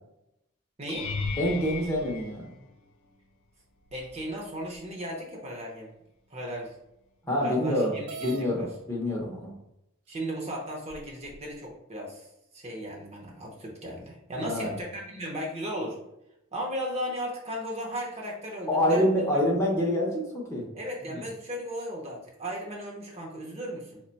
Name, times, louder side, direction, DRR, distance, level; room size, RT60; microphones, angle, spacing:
voice 1, 0.8-1.1 3.9-5.9 6.3-6.7 7.4-8.7 10.1-12.3 12.5-16.0 16.5-19.4 20.7-24.0, equal, 30° right, -1 dB, 0.7 m, -36 dB
sound 1, 0.9-3.2 3.9-4.3 4.7-4.8 9.2-9.3, left 4 dB, 65° left, 0.4 m, -36 dB
voice 2, 1.4-2.5 7.3-7.9 8.2-9.5 14.4-14.7 18.7-20.2 20.5-20.6 21.1-21.2, left 1 dB, 15° left, -3 dB, 0.6 m, -26 dB
sound 2, 8.1-8.4 9.4-9.5 10.2-10.3 10.9-11.6, right 4 dB, 85° right, 0.4 m, -41 dB
3.4 x 2.2 x 3.9 m, 0.84 s
head